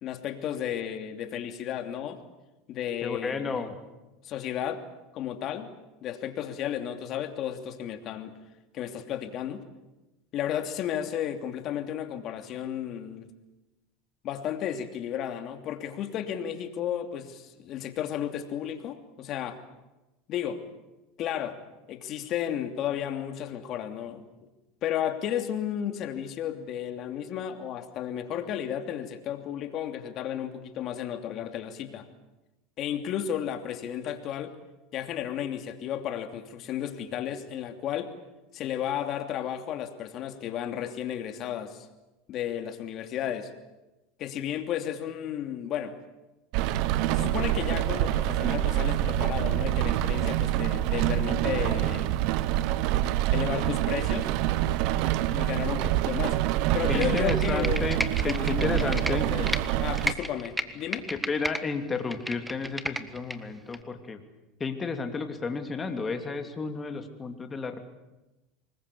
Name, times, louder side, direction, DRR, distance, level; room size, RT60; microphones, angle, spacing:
voice 1, 0.0-2.2 2.7-3.7 4.2-4.8 5.1-5.7 6.0-8.3 8.7-9.6 10.3-13.3 14.2-19.6 20.3-20.6 21.2-21.6 21.9-24.2 24.8-32.1 32.8-34.5 34.9-38.1 38.5-41.9 42.3-43.5 44.2-45.9 47.1-52.1 53.3-54.3 55.3-56.4 56.7-57.9 58.2-61.1, left 10 dB, 50° left, 7 dB, 2.9 m, -33 dB
voice 2, 3.0-3.8 55.8-55.9 56.9-59.3 61.1-64.2 64.6-67.8, left 4 dB, 20° left, 6 dB, 2.9 m, -32 dB
Rain, 46.5-60.1, right 13 dB, 65° right, 1.1 m, -26 dB
Computer keyboard, 56.9-59.6 60.0-61.6 62.0-63.4 63.7-63.8, right 1 dB, 5° right, 1.6 m, -32 dB
25.5 x 21.0 x 8.6 m, 1.0 s
supercardioid pair, 110°, 0 cm